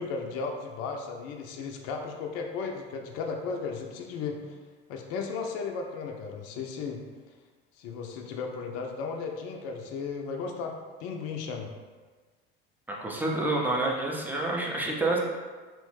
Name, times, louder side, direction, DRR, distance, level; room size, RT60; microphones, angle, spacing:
voice 1, 0.0-4.6 4.9-7.0 7.8-11.7, left 5 dB, 55° left, 3 dB, 0.5 m, -35 dB
voice 2, 12.9-15.2, right 2 dB, 5° right, -2 dB, 0.5 m, -28 dB
3.0 x 2.1 x 3.1 m, 1.4 s
hypercardioid pair, 75°, 29 cm